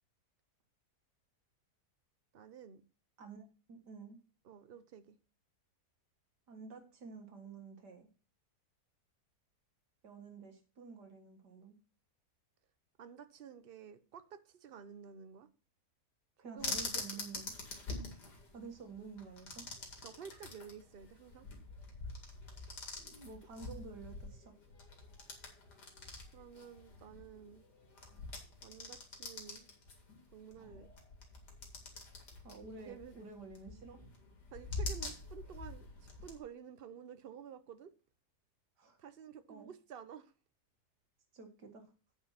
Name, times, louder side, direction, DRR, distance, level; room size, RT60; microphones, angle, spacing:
voice 1, 2.3-2.8 4.4-5.2 13.0-15.5 16.4-17.0 20.0-21.5 26.3-27.7 28.6-29.7 30.3-30.9 32.8-33.1 34.5-35.9 36.2-37.9 39.0-40.3, right 7 dB, 45° right, 0.8 m, -51 dB
voice 2, 3.2-4.2 6.5-8.1 10.0-11.8 16.4-17.6 18.5-19.7 23.0-24.5 32.4-34.0 38.8-39.0 39.5-39.7 41.3-41.9, right 4 dB, 85° right, 2.3 m, -50 dB
sound 1, 16.6-36.4, left 3 dB, 85° left, 2.7 m, -46 dB
8.8 x 5.3 x 5.6 m
omnidirectional pair, 1.7 m